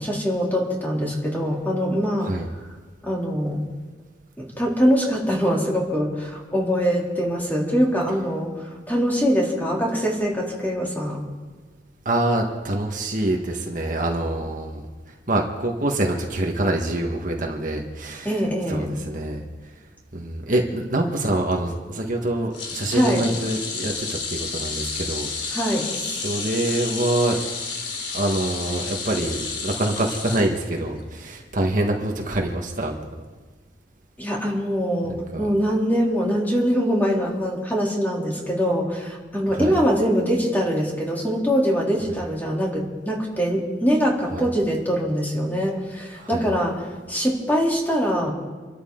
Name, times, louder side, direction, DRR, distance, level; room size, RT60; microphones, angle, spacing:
voice 1, 0.0-2.3 2.6-2.7 3.0-3.6 4.4-11.2 18.2-18.9 22.9-23.2 25.5-25.9 34.2-48.3, equal, 10° left, -3 dB, 3.4 m, -23 dB
voice 2, 12.0-14.8 15.3-18.3 18.7-19.4 20.1-25.6 26.2-27.4 28.1-33.0 35.3-35.5 39.5-39.7 44.3-44.4 46.2-46.4, right 1 dB, 45° right, 1 dB, 1.7 m, -25 dB
sound 1, 22.5-31.0 31.4-31.6 32.8-32.9, left 4 dB, 75° left, 3.0 m, -31 dB
27.5 x 13.0 x 3.9 m, 1.4 s
head